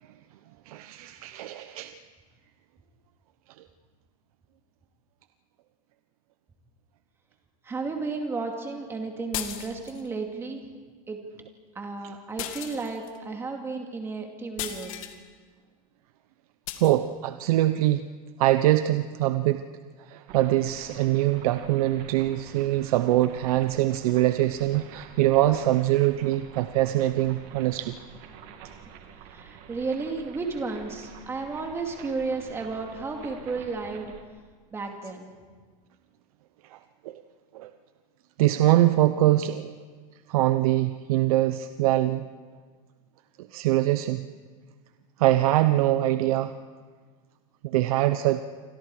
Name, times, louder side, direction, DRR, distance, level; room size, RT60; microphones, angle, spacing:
voice 1, 0.7-2.0 16.8-18.0 18.4-19.6 20.0-28.0 36.6-36.8 37.0-37.2 37.5-37.7 38.4-39.7 40.3-42.2 43.4-44.3 45.2-46.5 47.6-48.4, right 15 dB, 90° right, 10 dB, 0.9 m, -23 dB
voice 2, 7.6-10.7 11.1-11.2 11.7-14.9 29.3-34.1 34.7-35.3, right 4 dB, 15° right, 2 dB, 2.4 m, -33 dB
sound 1, 9.3-10.1 12.4-13.2 14.6-15.2 16.7-16.9, left 12 dB, 70° left, 2.2 m, -36 dB
sound 2, 20.3-34.2, right 8 dB, 45° right, 2.1 m, -48 dB
28.0 x 25.0 x 4.9 m, 1.5 s
supercardioid pair, 170°, 18 cm